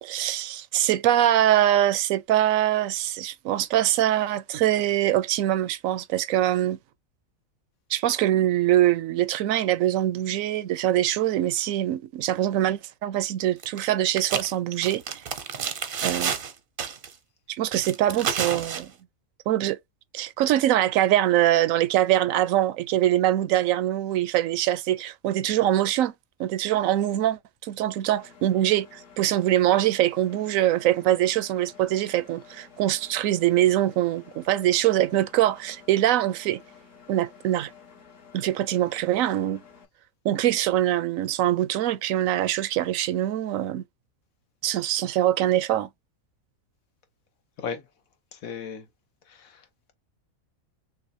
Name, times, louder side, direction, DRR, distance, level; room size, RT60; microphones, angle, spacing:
voice 1, 0.0-6.8 7.9-15.2 16.0-16.4 17.5-18.9 19.5-19.8 20.1-26.1 26.4-36.6 37.1-37.7 38.3-39.6 40.2-43.8 44.6-45.9, right 13 dB, 75° right, 0.9 m, -23 dB
sound 1, 13.6-13.9 14.2-16.5 16.8-17.1 17.7-18.8, right 7 dB, 50° right, 0.7 m, -30 dB
Engine, 28.2-39.9, left 6 dB, 60° left, 1.8 m, -51 dB
voice 2, 48.3-48.8 49.3-49.6, left 6 dB, 75° left, 1.5 m, -35 dB
6.1 x 2.2 x 2.6 m
omnidirectional pair, 1.5 m